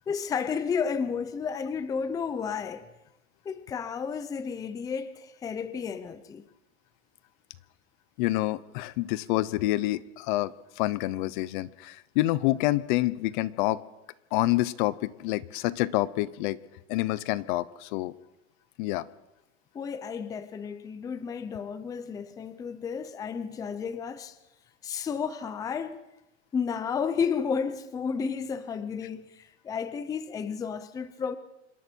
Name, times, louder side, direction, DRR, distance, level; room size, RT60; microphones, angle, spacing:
voice 1, 0.1-2.9 3.4-6.4 19.7-24.4 24.8-26.0 26.5-31.4, left 6 dB, 10° left, 0.6 m, -32 dB
voice 2, 8.2-13.8 14.3-16.6 16.9-18.1 18.8-19.1, left 17 dB, 50° left, 0.8 m, -27 dB
26.0 x 22.5 x 4.5 m
supercardioid pair, 160°, 33 cm